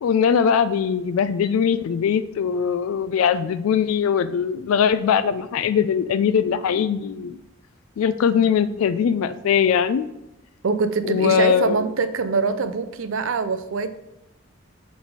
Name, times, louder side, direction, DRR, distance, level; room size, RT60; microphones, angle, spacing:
voice 1, 0.0-7.4 8.0-10.1 11.1-11.8, left 7 dB, 85° left, 12 dB, 0.3 m, -21 dB
voice 2, 10.6-14.0, right 4 dB, 70° right, 10 dB, 0.5 m, -24 dB
6.1 x 4.1 x 4.7 m, 0.92 s
head